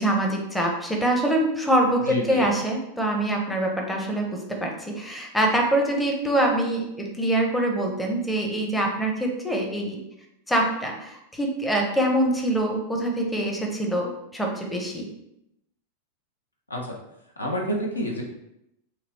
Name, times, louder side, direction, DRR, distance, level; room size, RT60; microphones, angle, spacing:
voice 1, 0.0-10.0 10.5-15.1, right 1 dB, 5° left, 0 dB, 0.6 m, -24 dB
voice 2, 2.1-2.5 16.7-16.8 17.4-18.2, equal, 80° left, -1 dB, 0.6 m, -28 dB
2.8 x 2.6 x 3.1 m, 0.82 s
figure-of-eight pair, 90°, 0 cm